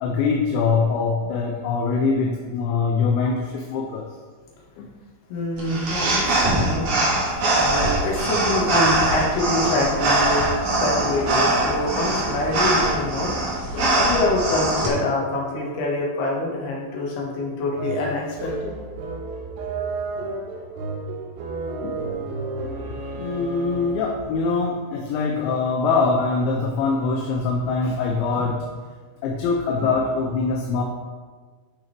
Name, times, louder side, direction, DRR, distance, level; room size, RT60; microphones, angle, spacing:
voice 1, 0.0-4.1 4.8-4.9 7.6-7.7 13.7-14.0 14.8-15.0 20.5-20.7 21.8-22.1 23.1-28.7 29.2-30.8, left 4 dB, 80° left, 0 dB, 3.0 m, -23 dB
voice 2, 5.3-6.9 7.5-10.5 10.8-13.3 13.9-18.7, left 2 dB, 60° left, -3 dB, 3.3 m, -25 dB
sound 1, 5.6-14.9, right 2 dB, 50° right, 2.3 m, -22 dB
sound 2, 17.8-24.2, right 3 dB, 75° right, 3.5 m, -32 dB
12.0 x 6.2 x 3.5 m, 1.5 s
omnidirectional pair, 5.6 m